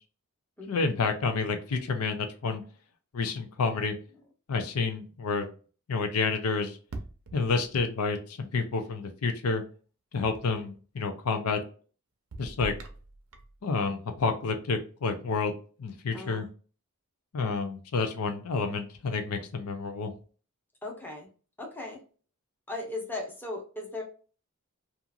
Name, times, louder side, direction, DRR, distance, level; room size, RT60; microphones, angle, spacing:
voice 1, 0.7-2.6 3.1-3.9 4.5-5.5 5.9-6.8 7.3-9.6 10.1-11.6 12.4-12.8 13.6-15.5 15.8-16.5 17.3-20.1, left 4 dB, 80° left, 7 dB, 0.5 m, -29 dB
sound 1, 6.9-8.0 10.2-10.8 12.3-13.6, right 2 dB, 70° right, 0.6 m, -43 dB
voice 2, 16.1-16.5 20.8-21.3 21.6-22.0 22.7-24.0, left 2 dB, 10° left, 0 dB, 0.8 m, -37 dB
2.8 x 2.5 x 2.3 m, 0.38 s
head